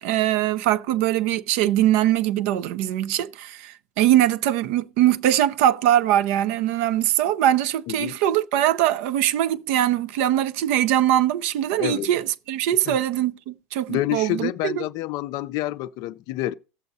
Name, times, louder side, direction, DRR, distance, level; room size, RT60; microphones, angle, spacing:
voice 1, 0.0-14.8, right 12 dB, 60° right, 0.6 m, -22 dB
voice 2, 7.9-8.2 11.8-12.1 12.9-13.0 13.9-16.5, left 15 dB, 50° left, 0.4 m, -28 dB
17.0 x 7.0 x 2.7 m
hypercardioid pair, 90°, 8 cm